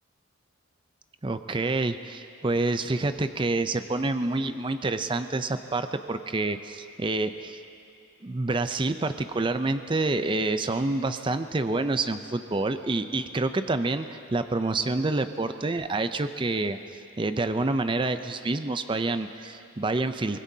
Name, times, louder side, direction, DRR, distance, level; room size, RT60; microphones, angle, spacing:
voice 1, 1.2-7.6 8.2-16.8 17.2-20.4, right 2 dB, 25° right, 10 dB, 0.5 m, -27 dB
24.5 x 20.5 x 2.8 m, 2.7 s
head